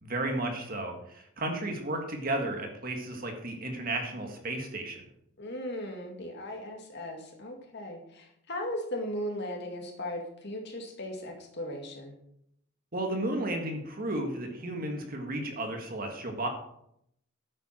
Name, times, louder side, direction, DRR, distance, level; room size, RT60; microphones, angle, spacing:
voice 1, 0.0-5.0 12.9-16.5, right 1 dB, 45° right, 3 dB, 1.9 m, -33 dB
voice 2, 5.4-12.1, left 1 dB, 55° left, 2 dB, 2.2 m, -37 dB
11.0 x 8.8 x 4.5 m, 0.74 s
head